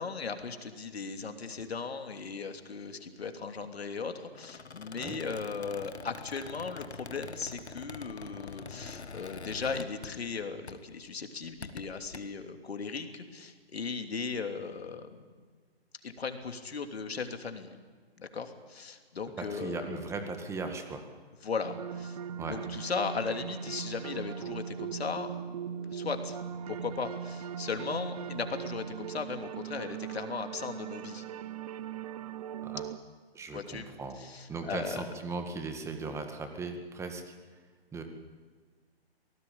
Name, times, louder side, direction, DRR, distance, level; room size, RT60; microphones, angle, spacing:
voice 1, 0.0-15.2 16.0-17.7 18.2-20.0 21.4-22.2 22.5-25.3 25.9-26.4 26.7-31.2 33.5-33.8 34.2-35.1, left 5 dB, 70° left, 6 dB, 3.0 m, -37 dB
Squeak, 4.3-10.4 10.7-10.9 11.4-12.2, left 4 dB, 90° left, 1.6 m, -45 dB
voice 2, 19.4-21.1 22.4-22.6 32.6-32.9 33.3-34.2 34.5-37.3 37.9-38.0, right 3 dB, 10° right, 6 dB, 2.0 m, -38 dB
sound 1, 21.6-33.0, right 8 dB, 35° right, 0.9 m, -39 dB
25.0 x 19.0 x 8.7 m, 1.5 s
hypercardioid pair, 140°, 32 cm